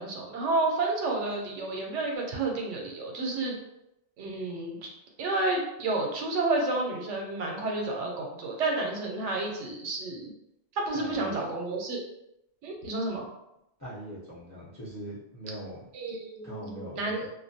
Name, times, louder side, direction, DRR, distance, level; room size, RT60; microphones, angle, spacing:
voice 1, 0.0-3.6 4.2-4.9 5.2-10.3 10.8-12.0 12.6-13.3 15.9-17.3, right 2 dB, 80° right, 1 dB, 0.9 m, -30 dB
voice 2, 10.9-11.4 13.8-15.8 16.4-17.3, equal, 20° left, -8 dB, 0.5 m, -41 dB
2.4 x 2.1 x 2.6 m, 0.85 s
omnidirectional pair, 1.2 m